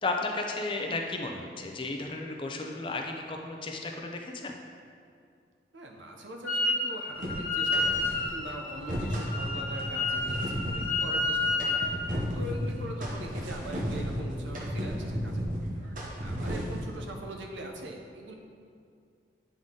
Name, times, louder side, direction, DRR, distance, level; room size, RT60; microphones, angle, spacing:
voice 1, 0.0-4.5, left 3 dB, 25° left, 2 dB, 0.5 m, -34 dB
voice 2, 5.7-11.7 12.3-15.5 16.2-18.3, right 1 dB, 85° right, 2 dB, 0.8 m, -42 dB
Wind instrument woodwind instrument, 6.4-6.9 7.1-11.9, left 3 dB, 10° left, 1.2 m, -30 dB
sound 1, 7.2-8.3 8.7-17.0, equal, 45° right, 0.9 m, -34 dB
9.0 x 3.8 x 3.7 m, 2.4 s
head